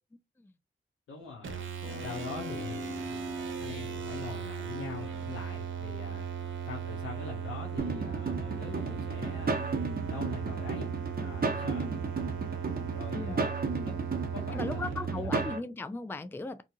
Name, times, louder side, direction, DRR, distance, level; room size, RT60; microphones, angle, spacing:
voice 1, 1.1-1.6 2.0-6.2 6.6-9.7 10.1-10.9 11.2-11.9 12.9-13.5 13.8-13.9 14.3-15.4, left 4 dB, 90° left, 0.8 m, -43 dB
sound 1, 1.4-15.5, right 7 dB, 70° right, 0.7 m, -37 dB
sound 2, 1.8-7.0, left 6 dB, 60° left, 0.8 m, -51 dB
sound 3, 7.8-15.6, right 4 dB, 45° right, 0.9 m, -34 dB
voice 2, 13.1-13.5 14.5-16.6, left 3 dB, 10° left, 0.4 m, -37 dB
2.7 x 2.4 x 2.7 m
cardioid pair, 45°, 21 cm